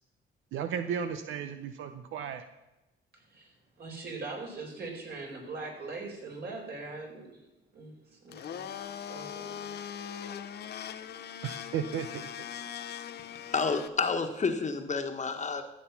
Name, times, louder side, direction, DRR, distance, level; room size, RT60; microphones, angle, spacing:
voice 1, 0.5-2.5 11.4-12.2, right 7 dB, 80° right, 8 dB, 0.7 m, -34 dB
voice 2, 3.1-7.4 7.7-9.8, right 3 dB, 55° right, 0 dB, 4.6 m, -42 dB
Domestic sounds home sounds, 8.3-13.9, left 8 dB, 55° left, 0.7 m, -40 dB
voice 3, 13.5-15.6, left 4 dB, 35° left, 6 dB, 1.3 m, -29 dB
14.0 x 7.3 x 5.9 m, 0.98 s
cardioid pair, 90°, 20 cm